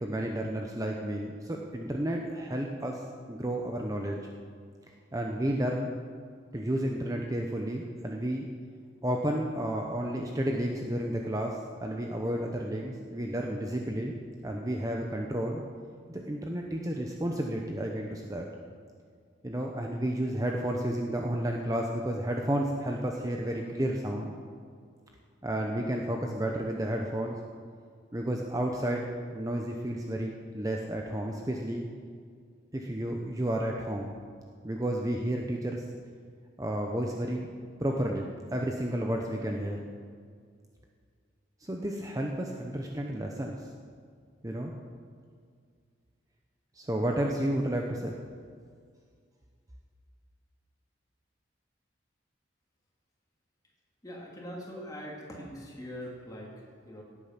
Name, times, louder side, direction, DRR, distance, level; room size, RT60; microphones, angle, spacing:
voice 1, 0.0-4.2 5.1-5.9 6.5-8.5 9.0-14.1 14.4-15.6 16.1-18.5 19.4-24.3 25.4-27.4 28.1-31.9 32.7-34.1 34.6-35.8 36.6-37.5 37.8-39.8 41.6-43.7 44.4-44.7 46.7-48.1, right 1 dB, 20° right, 1 dB, 0.8 m, -31 dB
voice 2, 54.0-57.0, equal, 20° left, -2 dB, 2.6 m, -42 dB
17.5 x 8.5 x 5.8 m, 2.1 s
head